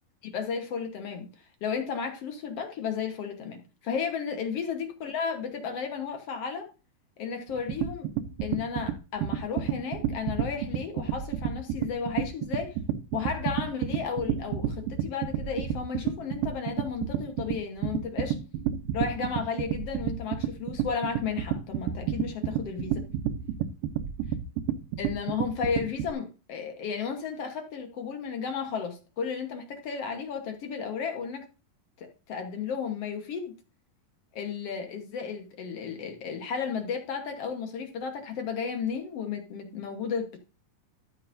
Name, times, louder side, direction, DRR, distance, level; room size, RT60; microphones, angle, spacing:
voice 1, 0.2-1.3 1.6-6.7 7.2-8.1 8.4-12.8 13.1-18.4 18.9-23.0 25.0-31.5 32.0-33.6 34.3-40.4, left 6 dB, 65° left, 1.6 m, -33 dB
sound 1, 7.5-26.1, right 10 dB, 75° right, 2.2 m, -30 dB
13.0 x 6.9 x 2.6 m
omnidirectional pair, 4.3 m